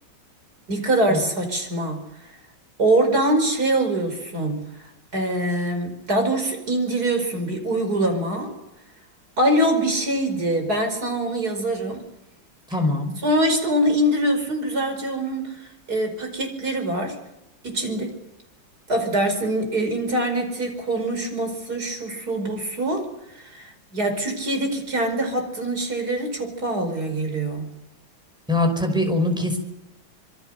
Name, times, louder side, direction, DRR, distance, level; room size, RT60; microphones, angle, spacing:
voice 1, 0.7-2.2 2.8-8.5 9.4-12.0 13.2-17.2 17.6-18.2 18.9-27.7, right 1 dB, 50° right, 5 dB, 5.6 m, -24 dB
voice 2, 12.7-13.1 28.5-29.6, left 2 dB, ahead, 4 dB, 5.3 m, -22 dB
26.5 x 23.0 x 6.7 m, 0.92 s
omnidirectional pair, 2.1 m